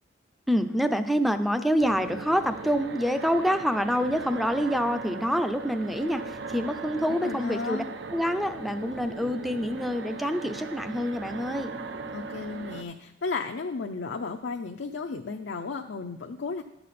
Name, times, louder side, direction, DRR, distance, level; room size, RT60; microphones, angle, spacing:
voice 1, 0.5-7.8 8.1-11.7, equal, ahead, 9 dB, 0.4 m, -26 dB
sound 1, 1.8-12.8, right 3 dB, 70° right, 0.6 m, -39 dB
voice 2, 7.1-7.9 12.1-16.6, left 4 dB, 85° left, 3 dB, 0.5 m, -34 dB
11.0 x 6.8 x 4.2 m, 0.90 s
head